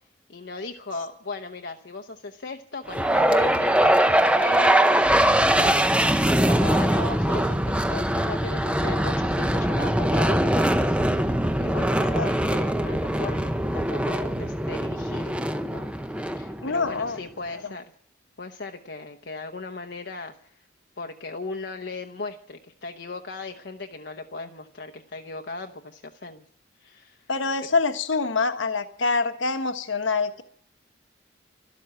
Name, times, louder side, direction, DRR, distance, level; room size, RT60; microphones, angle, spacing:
voice 1, 0.3-5.2 5.6-5.8 6.3-15.4 15.7-17.8 18.4-20.6 21.0-26.4 26.8-27.3, left 3 dB, 60° left, 4 dB, 0.9 m, -37 dB
sound 1, 2.9-17.1, right 1 dB, 5° right, 0.7 m, -22 dB
voice 2, 16.6-17.2 17.6-17.7 27.3-30.4, left 4 dB, 75° left, 9 dB, 1.3 m, -25 dB
12.5 x 12.5 x 8.9 m, 0.65 s
head